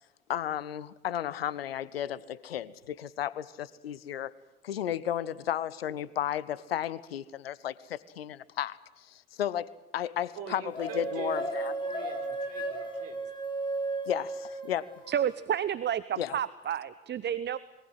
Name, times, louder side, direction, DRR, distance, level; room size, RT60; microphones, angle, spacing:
voice 1, 0.3-4.3 4.6-11.7 14.1-14.9 16.2-16.4, left 10 dB, 80° left, 20 dB, 0.9 m, -34 dB
voice 2, 10.3-13.2, right 7 dB, 55° right, 6 dB, 4.8 m, -44 dB
sound 1, 10.7-15.2, right 2 dB, 15° left, 7.2 m, -34 dB
voice 3, 15.1-17.6, right 9 dB, 35° right, 16 dB, 1.0 m, -30 dB
26.0 x 22.5 x 7.7 m, 0.99 s
figure-of-eight pair, 55°, 30 cm